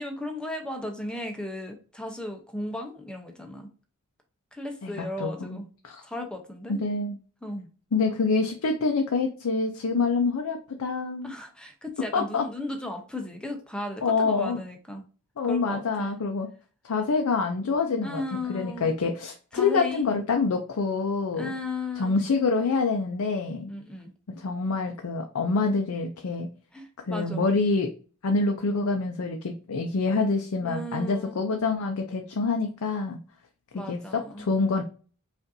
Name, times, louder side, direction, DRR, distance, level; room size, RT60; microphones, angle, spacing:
voice 1, 0.0-3.7 4.5-5.7 6.0-6.8 7.4-7.7 11.2-15.1 15.4-16.2 18.0-18.9 19.5-20.1 21.4-22.2 23.7-24.1 26.7-27.5 30.6-31.4 33.7-34.4, left 1 dB, 5° left, 0.7 m, -35 dB
voice 2, 4.8-6.0 6.7-7.2 7.9-11.3 12.1-12.4 14.0-14.6 15.4-16.5 16.8-18.2 18.5-21.5 22.0-23.7 24.4-26.5 27.1-27.9 28.2-33.2 33.7-34.8, left 4 dB, 75° left, 0.5 m, -26 dB
5.1 x 2.5 x 2.6 m
head